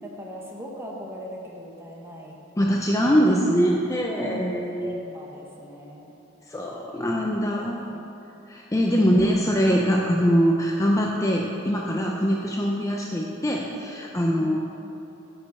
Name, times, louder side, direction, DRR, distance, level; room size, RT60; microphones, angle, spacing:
voice 1, 0.0-2.4 3.0-3.2 4.2-6.1 7.1-8.0 14.0-14.1 14.4-14.6, left 1 dB, 10° right, -2 dB, 1.2 m, -39 dB
voice 2, 2.6-5.0 6.5-7.8 8.5-14.6, equal, 15° left, -1 dB, 0.5 m, -23 dB
9.9 x 5.2 x 6.7 m, 3.0 s
head